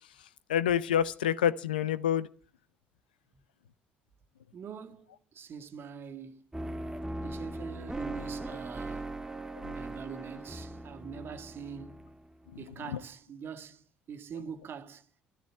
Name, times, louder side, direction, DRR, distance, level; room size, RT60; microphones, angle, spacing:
voice 1, 0.5-2.3 9.6-9.7 12.5-13.0, left 9 dB, 90° left, 0.8 m, -28 dB
voice 2, 4.5-6.4 7.2-9.1 9.7-12.2 12.6-15.1, right 6 dB, 50° right, 1.8 m, -44 dB
sound 1, 6.5-12.6, right 2 dB, 10° right, 1.8 m, -39 dB
13.5 x 12.0 x 7.7 m
hypercardioid pair, 55°, 5 cm